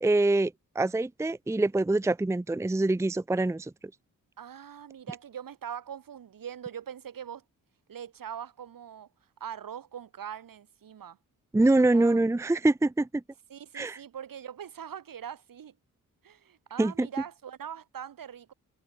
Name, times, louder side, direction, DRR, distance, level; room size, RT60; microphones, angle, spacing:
voice 1, 0.0-3.7 11.5-13.2 13.7-14.0 16.8-17.1, right 2 dB, 10° right, 0.6 m, -25 dB
voice 2, 4.4-7.4 7.9-9.1 9.4-11.2 11.8-12.2 13.5-15.7 16.2-18.5, right 9 dB, 70° right, 2.9 m, -42 dB
cardioid pair, 65°, 35 cm